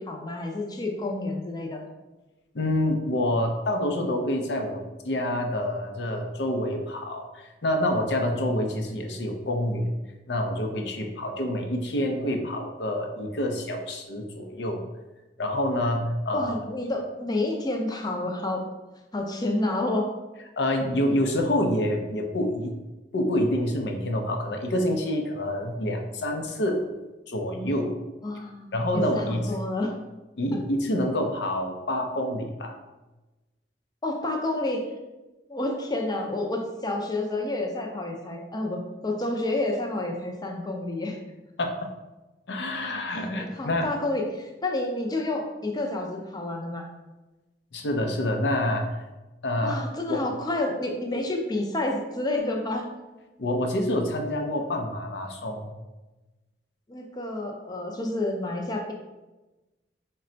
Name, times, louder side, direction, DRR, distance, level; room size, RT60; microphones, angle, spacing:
voice 1, 0.0-1.9 16.3-18.7 19.1-20.1 28.2-29.9 34.0-34.9 35.5-41.2 43.1-46.9 49.6-52.9 56.9-58.9, left 2 dB, 25° left, 1 dB, 0.5 m, -29 dB
voice 2, 2.5-10.0 10.3-14.8 15.4-16.5 20.6-22.8 23.1-26.8 27.3-27.9 28.7-29.5 30.4-32.7 41.6-41.9 42.5-43.9 47.7-48.9 49.4-49.8 50.1-50.2 53.4-55.7, left 1 dB, 70° left, 3 dB, 0.6 m, -27 dB
4.2 x 2.2 x 3.8 m, 1.1 s
head